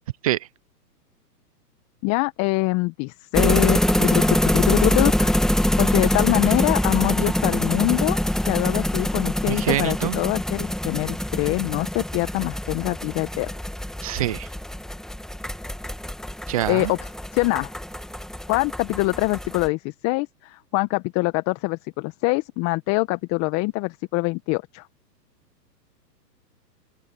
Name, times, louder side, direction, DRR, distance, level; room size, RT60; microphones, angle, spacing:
voice 1, 2.0-5.3 5.6-8.2 8.5-13.5 16.7-17.0 17.3-17.7 18.5-24.9, left 25 dB, 30° left, 1.5 m, -24 dB
sound 1, 3.3-19.7, left 1 dB, ahead, 1.8 m, -24 dB
voice 2, 9.5-10.2 14.0-14.5 16.5-16.9, right 14 dB, 25° right, 0.4 m, -25 dB
hypercardioid pair, 125°, 49 cm